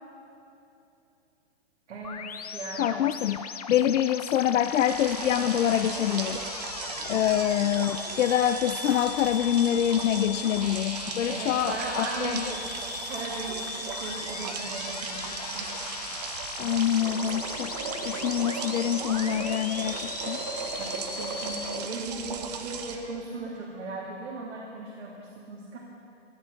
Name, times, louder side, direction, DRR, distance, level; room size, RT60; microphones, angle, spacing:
voice 1, 1.9-2.2 2.5-3.0 11.3-12.7 13.1-15.7 20.8-25.8, right 3 dB, 75° right, -4 dB, 2.6 m, -37 dB
sound 1, 2.0-21.8, left 7 dB, 35° left, 0.4 m, -39 dB
voice 2, 2.8-3.4 3.7-6.5 7.0-12.4 16.6-20.4 20.8-20.9, left 10 dB, 85° left, 10 dB, 0.6 m, -26 dB
sound 2, 4.6-23.0, right 6 dB, 35° right, 0.9 m, -37 dB
sound 3, 16.9-22.0, right 3 dB, 15° right, 0.5 m, -38 dB
14.5 x 11.5 x 6.6 m, 2.8 s
hypercardioid pair, 175°, 36 cm